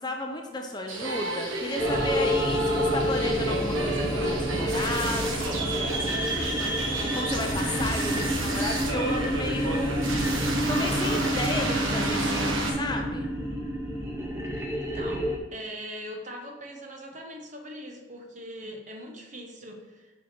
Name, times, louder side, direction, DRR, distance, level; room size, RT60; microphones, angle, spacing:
voice 1, 0.0-10.0 10.7-13.3 18.6-18.7, left 1 dB, 20° left, 3 dB, 0.5 m, -33 dB
sound 1, 0.9-12.7, right 2 dB, 85° right, 1.2 m, -31 dB
sound 2, 1.8-15.4, equal, 15° right, 0.7 m, -29 dB
voice 2, 14.5-20.1, equal, 40° right, 2 dB, 0.8 m, -41 dB
5.7 x 5.0 x 4.4 m, 1.2 s
head